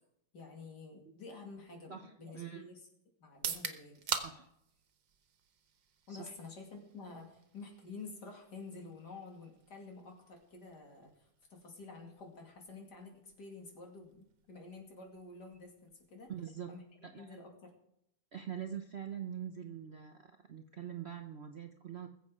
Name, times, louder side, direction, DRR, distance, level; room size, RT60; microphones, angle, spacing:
voice 1, 0.3-2.8 3.2-4.2 6.1-16.3 16.7-16.8 17.1-17.7, left 3 dB, 65° left, 1 dB, 3.0 m, -50 dB
voice 2, 1.9-2.6 4.2-4.5 6.1-6.3 16.3-16.8 17.0-17.4 18.3-22.1, right 9 dB, 50° right, 5 dB, 0.8 m, -44 dB
sound 1, 3.3-17.1, right 7 dB, 80° right, 1.8 m, -47 dB
20.5 x 7.8 x 4.8 m, 0.77 s
omnidirectional pair, 1.9 m